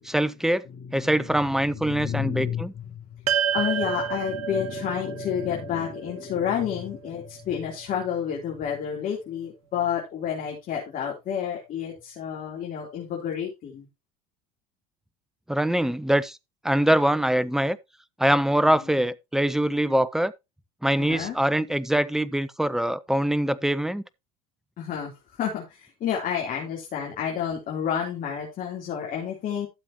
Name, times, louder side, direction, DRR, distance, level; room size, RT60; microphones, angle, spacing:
voice 1, 0.0-0.6 0.9-2.7 15.5-16.4 16.6-17.8 18.2-20.3 20.8-24.0, right 1 dB, ahead, 0.7 m, -23 dB
voice 2, 0.7-1.3 1.7-2.9 3.5-13.9 18.6-18.7 21.0-21.4 24.8-29.7, left 8 dB, 50° left, 3.6 m, -30 dB
sound 1, 3.3-7.7, right 9 dB, 85° right, 1.0 m, -30 dB
13.0 x 7.4 x 3.0 m
hypercardioid pair, 80°, 18 cm